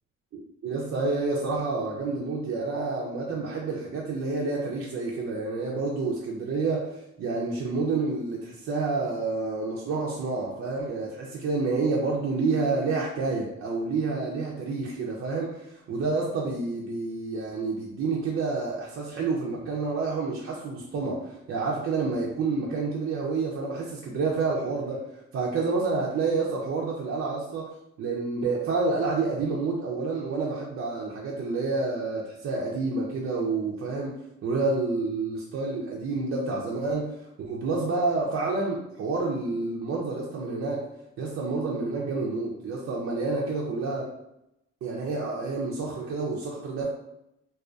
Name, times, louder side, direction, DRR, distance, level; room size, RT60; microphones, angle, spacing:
voice 1, 0.3-27.7 28.0-34.1 34.4-37.1 37.4-40.9 41.2-44.1 44.8-46.9, right 3 dB, 50° right, -2 dB, 0.4 m, -29 dB
2.5 x 2.3 x 2.3 m, 0.83 s
cardioid pair, 90°, 30 cm